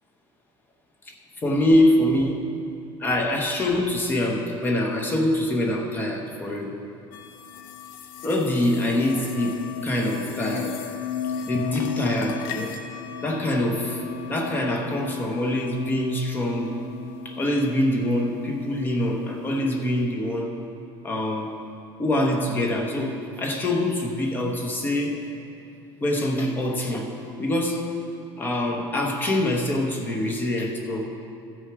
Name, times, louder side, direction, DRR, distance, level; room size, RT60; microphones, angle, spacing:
voice 1, 1.1-2.4 3.0-6.7 8.2-10.8 11.5-12.7 13.2-14.0 14.3-16.8 17.2-20.5 21.0-21.5 22.0-25.2 26.0-27.1 27.4-27.8 28.4-31.1, left 1 dB, 15° left, 1 dB, 1.0 m, -24 dB
sound 1, 7.1-20.1, left 5 dB, 70° left, 0.8 m, -35 dB
15.0 x 6.3 x 4.7 m, 2.6 s
cardioid pair, 165°, 12 cm